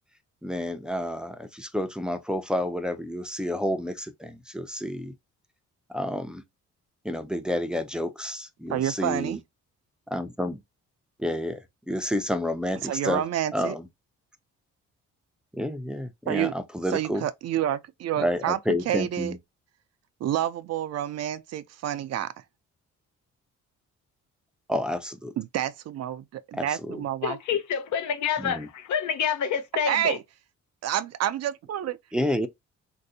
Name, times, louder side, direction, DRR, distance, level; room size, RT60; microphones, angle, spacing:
voice 1, 0.4-5.1 5.9-6.4 7.0-9.4 10.1-10.6 11.2-11.6 11.9-13.2 13.5-13.9 15.5-17.2 18.2-19.4 24.7-25.3 26.5-27.0 28.4-28.7 32.1-32.5, left 1 dB, 5° right, 0.5 m, -30 dB
voice 2, 8.7-9.4 12.8-13.7 16.3-16.5 16.9-18.6 18.9-19.4 20.2-22.3 25.4-27.4 29.9-30.2 30.8-32.0, right 11 dB, 55° right, 0.5 m, -28 dB
voice 3, 27.2-30.2, left 7 dB, 70° left, 0.8 m, -28 dB
3.1 x 2.7 x 2.6 m
cardioid pair, 90°, 30 cm